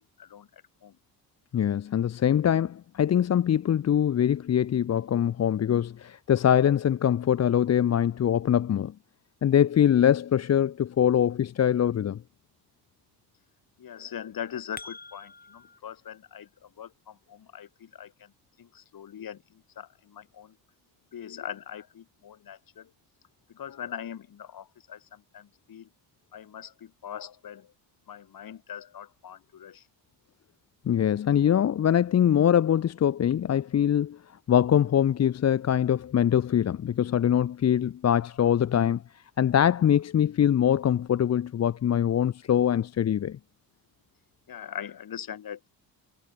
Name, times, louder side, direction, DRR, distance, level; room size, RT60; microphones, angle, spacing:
voice 1, 0.2-1.0 13.8-18.3 18.6-20.6 21.1-22.9 23.5-25.9 26.3-27.7 28.1-29.9 44.5-45.7, left 9 dB, 55° left, 4.8 m, -41 dB
voice 2, 1.5-8.9 9.4-12.2 30.9-34.2 34.5-39.0 39.4-43.4, left 9 dB, 35° left, 0.8 m, -23 dB
sound 1, 14.3-15.8, left 3 dB, 20° left, 6.7 m, -46 dB
cardioid pair, 85°, 43 cm